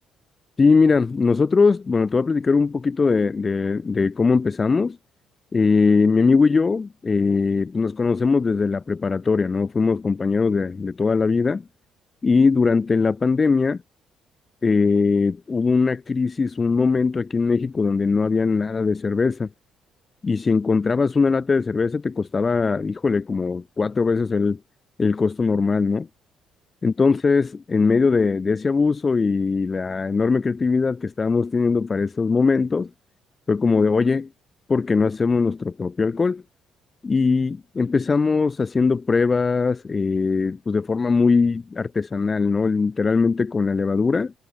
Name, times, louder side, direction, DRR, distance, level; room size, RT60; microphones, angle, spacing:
voice 1, 0.6-5.0 5.5-11.6 12.2-13.8 14.6-19.5 20.2-24.6 25.0-26.1 26.8-32.9 33.5-34.3 34.7-36.4 37.0-44.3, left 4 dB, 35° left, 1.6 m, -20 dB
supercardioid pair, 70°, 0 cm